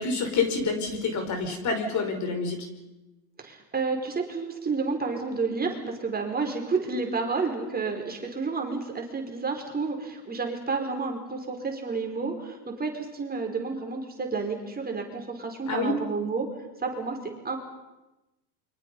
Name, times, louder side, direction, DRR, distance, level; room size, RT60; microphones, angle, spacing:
voice 1, 0.0-2.7 15.7-16.0, left 4 dB, 40° left, 5 dB, 5.5 m, -27 dB
voice 2, 3.4-16.5 16.8-17.6, right 4 dB, 20° right, 2 dB, 4.9 m, -30 dB
29.0 x 25.0 x 5.5 m, 1.0 s
supercardioid pair, 100°, 45 cm